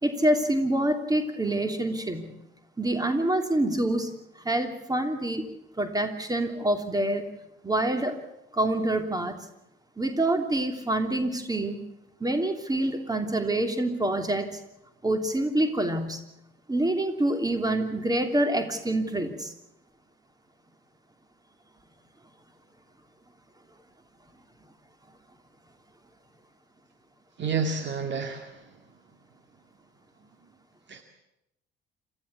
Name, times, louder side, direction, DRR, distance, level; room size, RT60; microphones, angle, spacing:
voice 1, 0.0-2.3 2.8-5.5 5.8-7.2 7.6-8.2 8.5-9.4 10.0-11.8 12.2-14.6 15.0-16.2 16.7-19.5, right 1 dB, 15° right, 7 dB, 3.0 m, -26 dB
voice 2, 27.4-28.8 30.9-31.0, right 5 dB, 40° right, 6 dB, 2.2 m, -30 dB
27.5 x 14.0 x 8.4 m, 0.87 s
figure-of-eight pair, 55°, 29 cm